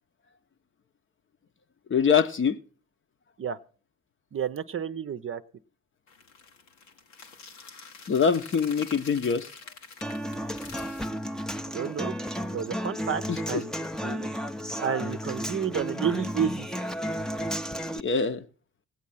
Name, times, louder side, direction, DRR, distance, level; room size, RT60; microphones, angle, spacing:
voice 1, 1.9-2.6 8.1-9.5 13.3-13.6 18.0-18.4, left 6 dB, 35° left, 0.9 m, -24 dB
voice 2, 4.3-5.4 11.6-12.1 12.5-13.7 14.0-14.3 14.8-16.7, right 7 dB, 35° right, 0.7 m, -30 dB
sound 1, 6.1-11.1, left 4 dB, 85° left, 1.4 m, -46 dB
Human voice / Acoustic guitar, 10.0-18.0, equal, ahead, 0.7 m, -33 dB
18.0 x 8.3 x 5.6 m
hypercardioid pair, 50°, 36 cm